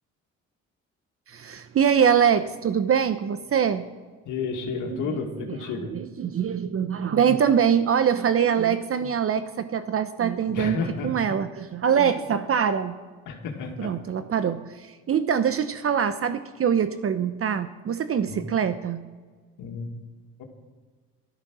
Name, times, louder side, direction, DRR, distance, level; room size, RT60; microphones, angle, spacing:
voice 1, 1.3-3.9 4.9-5.3 5.9-12.9 13.8-19.0, right 8 dB, 50° right, 11 dB, 0.8 m, -24 dB
voice 2, 4.3-5.9 10.5-11.1 13.3-13.9 18.3-18.4 19.6-19.9 20.4-20.5, left 5 dB, 90° left, 1 dB, 2.1 m, -31 dB
14.5 x 12.5 x 6.2 m, 1.5 s
cardioid pair, 90°, 30 cm